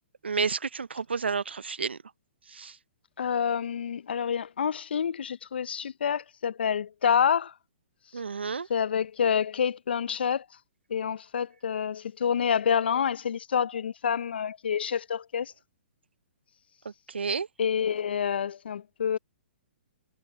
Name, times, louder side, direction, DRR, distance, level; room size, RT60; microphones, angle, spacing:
voice 1, 0.2-2.0 2.5-2.8 8.1-8.7 17.1-17.5, right 5 dB, 85° right, 0.9 m, -30 dB
voice 2, 3.2-7.5 8.7-10.4 10.9-15.5 17.6-19.2, left 7 dB, 70° left, 0.8 m, -28 dB
hypercardioid pair, 130°, 6 cm